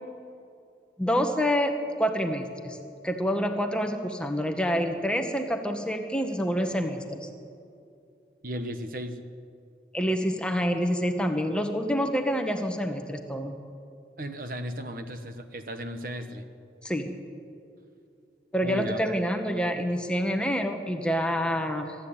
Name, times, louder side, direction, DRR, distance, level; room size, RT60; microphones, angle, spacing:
voice 1, 1.0-2.8 3.0-7.3 9.9-13.6 16.8-17.1 18.5-22.0, equal, 5° left, 4 dB, 1.3 m, -27 dB
voice 2, 8.4-9.2 14.2-16.5 18.6-19.0, equal, 50° right, 7 dB, 1.3 m, -35 dB
24.0 x 12.5 x 8.9 m, 2.6 s
head